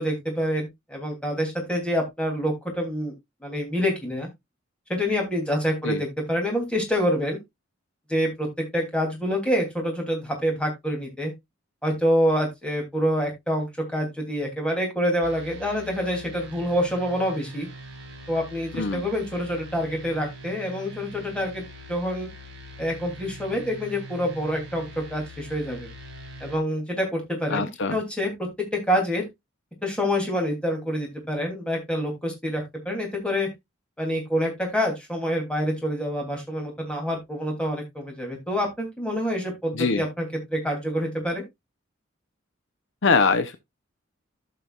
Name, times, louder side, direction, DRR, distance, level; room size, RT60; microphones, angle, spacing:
voice 1, 0.0-3.1 3.4-4.3 4.9-7.4 8.1-8.5 8.7-11.3 11.8-17.7 18.3-22.3 22.8-25.9 26.4-29.2 29.8-33.5 34.0-41.4, equal, 5° left, 2.9 m, -27 dB
sound 1, 15.2-26.6, equal, 60° right, 3.2 m, -43 dB
voice 2, 27.5-28.0 39.7-40.0 43.0-43.6, left 4 dB, 65° left, 0.7 m, -23 dB
14.5 x 5.8 x 2.4 m
head